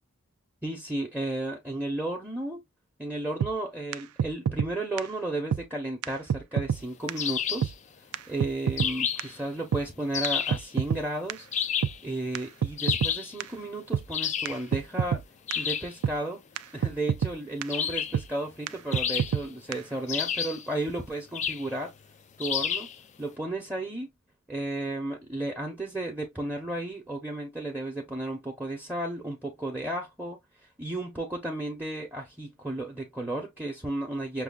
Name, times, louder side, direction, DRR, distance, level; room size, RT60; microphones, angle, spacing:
voice 1, 0.6-2.6 3.0-7.7 8.3-11.5 12.0-15.2 15.6-16.4 16.7-21.9 22.4-22.9 23.2-24.1 24.5-30.4 30.8-34.4, right 1 dB, 5° right, 0.8 m, -33 dB
sound 1, 3.4-3.5 3.9-4.0 4.2-4.7 5.0-5.1 5.5-5.6 6.0-6.1 6.3-6.8 7.1-7.2 7.6-7.7 8.1-8.2 8.4-8.9 9.2-9.3 9.7-9.8 10.2-11.0 11.3-11.4 11.8-11.9 12.4-12.5 12.6-13.1 13.4-13.5 13.9-14.0 14.5-14.6 14.7-15.2 15.5-15.6 16.0-16.2 16.6-16.7 16.8-17.3 17.6-17.7 18.1-18.3 18.7-18.8 18.9-19.4 19.7-19.8, right 8 dB, 75° right, 0.3 m, -27 dB
sound 2, 7.2-7.7 8.8-9.4 10.1-10.7 11.5-12.0 12.8-13.3 14.1-14.6 15.5-15.9 17.7-18.2 18.9-19.6 20.1-20.7 21.3-21.7 22.4-23.0, left 8 dB, 35° left, 0.3 m, -30 dB
6.0 x 2.3 x 2.3 m
head